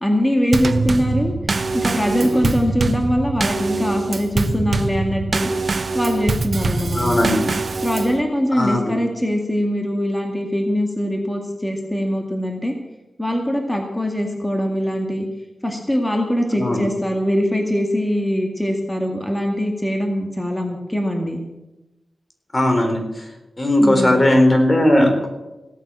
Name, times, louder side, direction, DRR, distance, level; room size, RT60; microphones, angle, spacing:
voice 1, 0.0-1.3 1.7-5.5 5.9-7.2 7.8-12.7 13.2-15.3 15.6-21.4 23.8-24.2, equal, 10° left, 2 dB, 2.1 m, -22 dB
Drum kit / Snare drum / Bass drum, 0.5-8.2, right 3 dB, 50° right, 0.9 m, -23 dB
voice 2, 6.9-7.4 8.6-8.9 16.5-16.9 22.5-23.2 23.6-25.3, left 1 dB, 30° left, 4 dB, 3.9 m, -17 dB
17.0 x 9.1 x 7.6 m, 1.0 s
wide cardioid pair, 80°, 0 cm